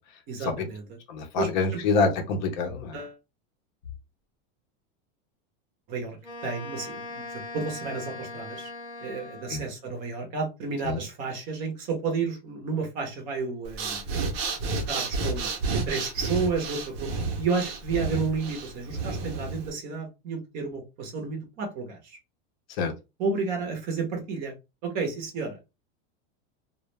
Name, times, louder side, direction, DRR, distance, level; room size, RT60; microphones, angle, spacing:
voice 1, 0.3-1.0 1.4-1.8 2.9-3.1 5.9-6.2 6.4-8.7 9.0-14.1 14.7-15.5 15.9-17.1 17.4-22.2 23.2-24.5 24.8-25.6, right 4 dB, 30° right, 0.6 m, -31 dB
voice 2, 1.1-2.9 9.5-9.6 10.9-11.0 22.8-22.9, left 4 dB, 50° left, 0.6 m, -26 dB
Wind instrument woodwind instrument, 6.2-9.8, left 2 dB, 15° left, 0.8 m, -40 dB
Breathing, 13.6-19.7, right 3 dB, 70° right, 0.7 m, -31 dB
2.2 x 2.0 x 3.1 m
supercardioid pair, 175°, 31 cm